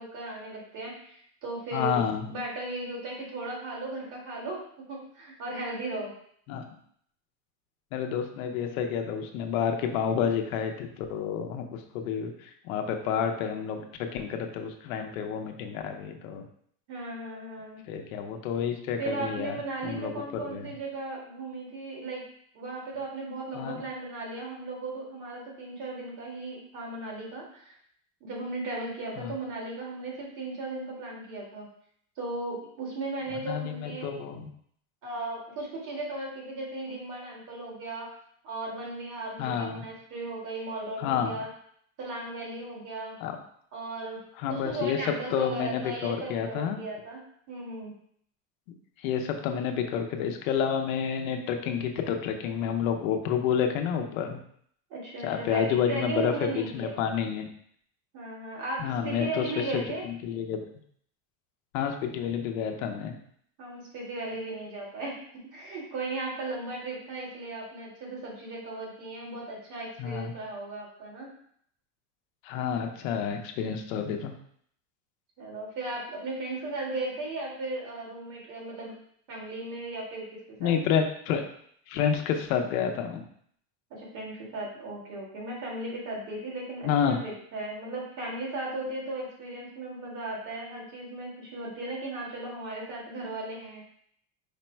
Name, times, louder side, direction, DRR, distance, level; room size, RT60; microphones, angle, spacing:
voice 1, 0.0-2.0 2.3-6.1 16.9-17.8 19.0-22.2 22.5-27.7 28.2-31.7 32.2-34.1 35.0-38.1 38.4-41.5 42.0-43.2 43.7-44.2 44.5-47.2 47.5-47.9 54.9-57.0 58.1-60.0 63.6-65.3 65.5-71.4 75.4-78.9 79.3-80.7 83.9-93.8, right 2 dB, 50° right, -2 dB, 1.6 m, -36 dB
voice 2, 1.7-2.3 6.5-6.6 7.9-16.4 17.9-19.6 19.8-20.2 20.5-20.7 23.5-23.8 29.2-29.3 33.3-34.5 39.4-39.9 41.0-41.4 43.2-43.4 44.4-45.0 45.3-46.8 49.0-54.4 55.2-57.5 58.8-59.4 59.7-60.6 61.7-63.2 70.0-70.3 72.4-74.3 80.6-81.4 81.9-83.2 86.8-87.2, left 7 dB, 80° left, 5 dB, 0.8 m, -29 dB
5.0 x 2.1 x 4.4 m, 0.65 s
supercardioid pair, 145°, 40 cm